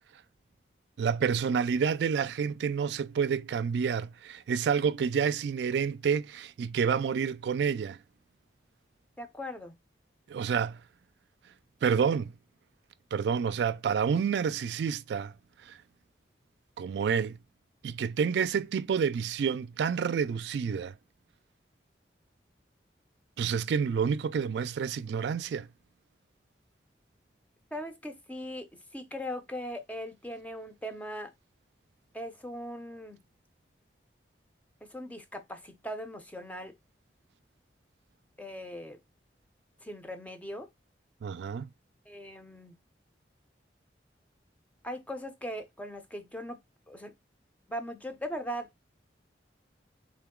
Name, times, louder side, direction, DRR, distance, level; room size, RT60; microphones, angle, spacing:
voice 1, 1.0-8.0 10.3-10.8 11.8-12.3 13.1-15.3 15.6-15.8 16.8-17.4 17.8-21.0 23.4-25.7 41.2-41.7, right 6 dB, 75° right, 0.3 m, -29 dB
voice 2, 9.2-9.8 27.7-31.3 32.1-33.2 34.8-36.7 38.4-39.0 39.8-40.7 42.1-42.8 44.8-46.6 46.9-47.1 47.7-48.7, equal, 10° left, 0.5 m, -39 dB
3.7 x 2.9 x 3.6 m
head